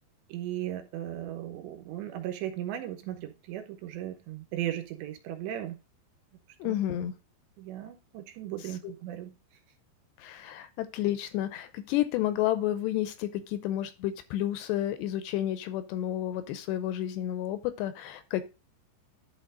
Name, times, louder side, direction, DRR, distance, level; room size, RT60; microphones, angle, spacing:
voice 1, 0.3-5.8 6.6-6.8 7.6-9.3, right 12 dB, 80° right, 6 dB, 3.2 m, -37 dB
voice 2, 6.6-7.1 8.8-8.9 10.2-18.4, left 12 dB, 80° left, 11 dB, 2.7 m, -31 dB
11.5 x 4.4 x 3.8 m, 0.28 s
omnidirectional pair, 5.3 m